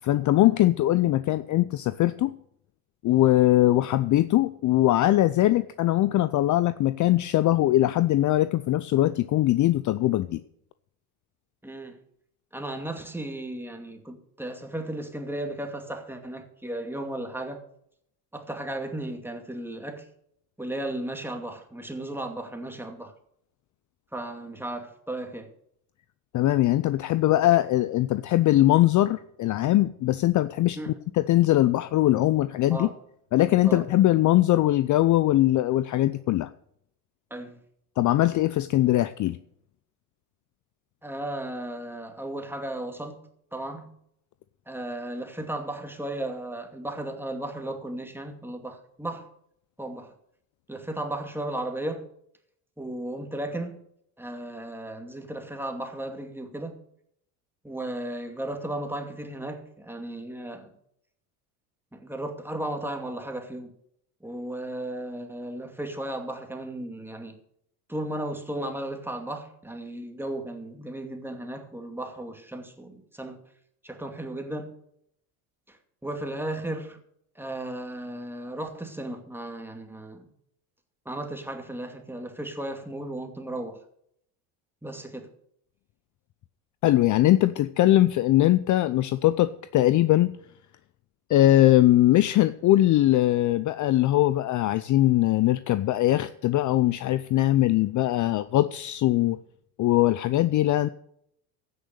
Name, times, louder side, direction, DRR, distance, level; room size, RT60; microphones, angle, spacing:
voice 1, 0.0-2.3 3.0-10.4 26.3-32.9 33.3-36.5 38.0-39.4 86.8-90.3 91.3-99.4 99.8-100.9, left 14 dB, 40° left, 0.6 m, -21 dB
voice 2, 11.6-12.0 12.5-17.6 18.3-20.1 20.6-23.1 24.1-25.5 30.8-31.0 32.7-33.0 33.6-33.8 37.3-37.6 41.0-43.2 43.5-43.9 44.7-49.3 49.8-50.1 50.7-52.1 52.8-53.8 54.2-56.8 57.6-60.7 61.9-63.7 64.2-67.4 67.9-73.4 73.8-74.7 75.7-77.0 77.4-80.3 81.1-83.8 84.8-85.3, right 1 dB, 5° right, 2.5 m, -35 dB
15.5 x 6.4 x 6.8 m
hypercardioid pair, 80°, 47 cm